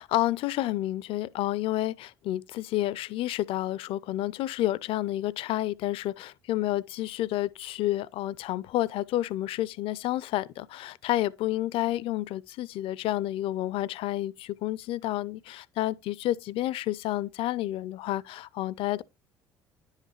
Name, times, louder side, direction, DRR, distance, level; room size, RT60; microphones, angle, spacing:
voice 1, 0.0-19.0, left 15 dB, 55° left, 0.4 m, -30 dB
10.0 x 5.6 x 3.1 m
figure-of-eight pair, 55°, 11 cm